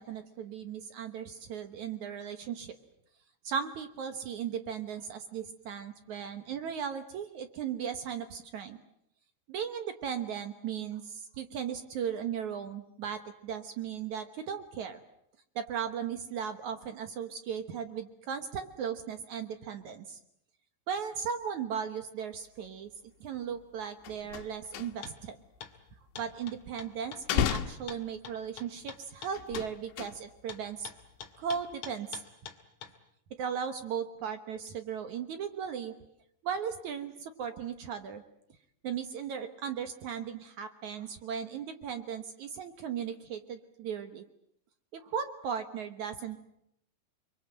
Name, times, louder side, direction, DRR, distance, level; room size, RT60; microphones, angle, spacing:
voice 1, 0.0-2.8 3.4-8.8 9.5-15.0 15.6-20.2 20.9-22.9 23.2-25.4 26.2-30.9 31.4-32.2 33.4-35.9 36.4-38.2 38.8-44.2 44.9-46.4, right 7 dB, 70° right, 9 dB, 1.9 m, -37 dB
sound 1, 23.5-23.7 23.9-25.3 25.5-26.7 27.1-28.6 29.3-30.5 30.8-31.3 31.6-31.8, left 9 dB, 90° left, 3.7 m, -34 dB
sound 2, 25.0-25.2 25.6-25.7 26.2-29.7 30.5-32.9, left 7 dB, 50° left, 3.1 m, -45 dB
29.5 x 23.0 x 7.7 m, 0.75 s
omnidirectional pair, 5.0 m